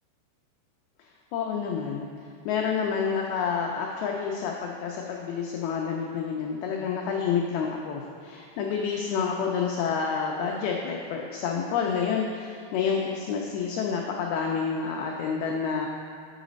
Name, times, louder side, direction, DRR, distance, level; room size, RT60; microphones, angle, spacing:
voice 1, 1.3-2.1 2.5-15.9, left 6 dB, 90° left, 0 dB, 2.2 m, -29 dB
8.4 x 4.0 x 5.1 m, 2.5 s
omnidirectional pair, 5.0 m